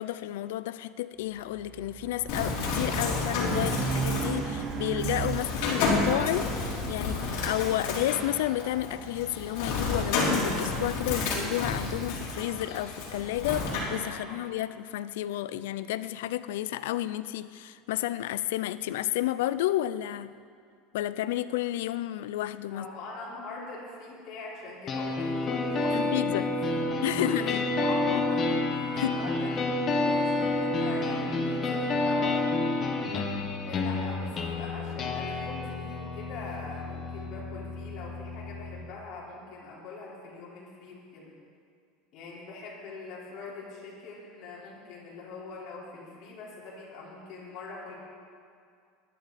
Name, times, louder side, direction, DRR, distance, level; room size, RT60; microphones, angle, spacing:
voice 1, 0.0-20.3 20.9-22.9 25.9-26.5 27.0-27.7 29.0-29.2 33.1-33.5, left 14 dB, 85° left, 14 dB, 0.4 m, -31 dB
Race car auto racing, 1.5-5.9, right 6 dB, 20° right, 0.4 m, -35 dB
Bird, 2.3-13.8, left 3 dB, 60° left, 3.6 m, -31 dB
voice 2, 14.1-14.4 22.7-26.7 27.2-29.6 29.9-32.5 33.7-41.3 42.1-47.9, left 3 dB, 40° left, -6 dB, 4.3 m, -42 dB
sound 1, 24.9-38.9, left 2 dB, 25° left, 1.2 m, -29 dB
19.5 x 11.5 x 4.2 m, 2.3 s
supercardioid pair, 170°, 0 cm